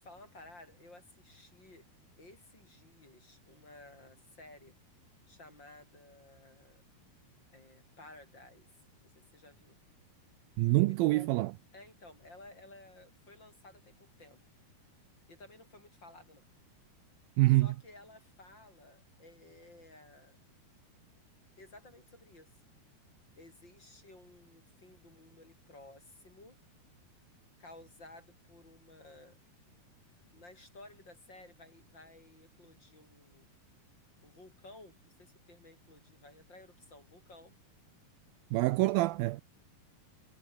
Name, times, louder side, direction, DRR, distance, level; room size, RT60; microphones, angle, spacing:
voice 1, 0.0-1.9 2.2-4.8 5.3-6.8 7.5-8.7 9.0-9.8 10.9-11.3 11.7-14.4 15.3-16.5 17.5-20.4 21.6-22.5 23.4-26.6 27.6-29.4 30.3-33.5 34.2-37.5 38.5-38.7, left 2 dB, 25° left, 7.7 m, -55 dB
voice 2, 10.6-11.5 17.4-17.7 38.5-39.4, right 19 dB, 80° right, 2.3 m, -26 dB
omnidirectional pair, 4.5 m